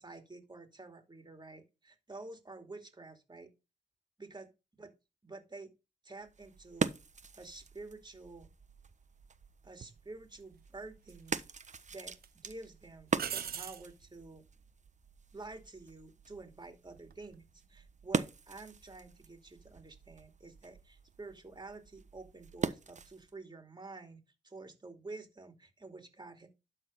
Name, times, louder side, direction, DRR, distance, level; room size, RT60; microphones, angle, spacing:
voice 1, 0.0-3.5 4.2-4.5 4.8-4.9 5.2-5.7 6.0-6.9 7.3-8.5 9.6-14.4 15.3-26.5, right 3 dB, 25° right, 2.6 m, -49 dB
sound 1, 6.2-23.4, right 5 dB, 45° right, 1.1 m, -42 dB
sound 2, 9.8-10.0 11.1-11.7 12.1-12.3 13.2-13.9 17.0-17.3, right 9 dB, 65° right, 0.7 m, -40 dB
12.0 x 4.1 x 5.4 m
cardioid pair, 55°, 16 cm